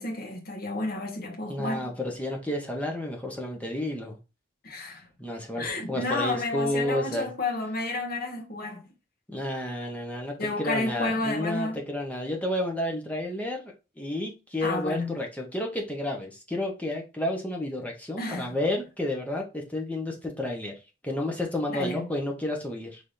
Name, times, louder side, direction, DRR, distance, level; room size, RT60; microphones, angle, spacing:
voice 1, 0.0-1.9 4.6-5.1 5.6-8.8 10.4-11.8 14.6-15.2 18.2-18.6 21.7-22.1, left 2 dB, 50° left, 1.4 m, -31 dB
voice 2, 1.5-4.2 5.2-7.3 9.3-20.7 21.0-23.0, left 1 dB, 10° left, 1.0 m, -31 dB
4.9 x 3.6 x 2.6 m
head